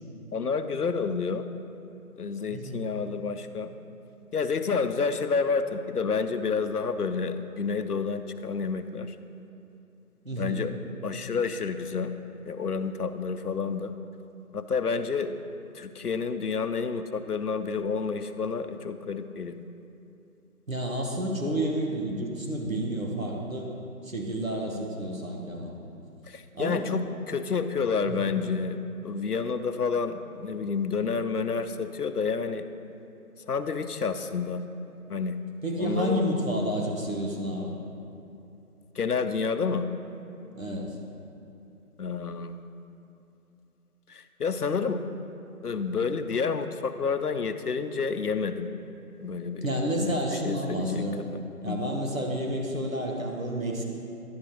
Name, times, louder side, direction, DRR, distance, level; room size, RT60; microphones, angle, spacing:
voice 1, 0.3-1.4 2.2-3.7 4.3-9.2 10.3-10.7 11.0-12.1 12.5-13.9 14.5-15.4 15.7-19.6 26.3-28.8 29.0-32.6 33.5-34.6 35.1-35.4 35.8-36.2 39.0-39.9 42.0-42.6 44.1-45.0 45.6-48.7 49.2-49.7 50.0-51.8, left 5 dB, 80° left, 10 dB, 0.6 m, -29 dB
voice 2, 2.5-2.9 10.2-10.6 20.7-23.7 24.0-25.7 26.5-26.8 28.0-28.3 35.6-37.7 40.5-40.9 49.6-51.2 51.6-53.8, right 1 dB, 60° right, -1 dB, 1.2 m, -30 dB
11.0 x 8.6 x 2.9 m, 2.8 s
figure-of-eight pair, 175°, 46 cm